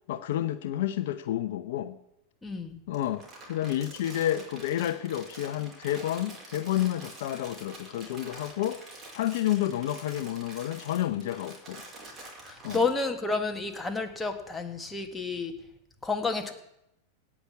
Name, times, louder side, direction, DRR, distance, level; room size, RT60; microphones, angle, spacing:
voice 1, 0.1-2.0 2.9-3.2 3.5-8.8 9.1-11.8 12.6-12.9, left 12 dB, 65° left, 12 dB, 0.7 m, -30 dB
voice 2, 2.4-2.8 12.4-15.5 16.0-16.5, left 4 dB, 10° left, 4 dB, 1.9 m, -30 dB
Crumpling crinkling, 2.9-13.0, right 2 dB, 30° right, 5.0 m, -47 dB
17.5 x 6.1 x 8.3 m, 0.83 s
hypercardioid pair, 95°, 0 cm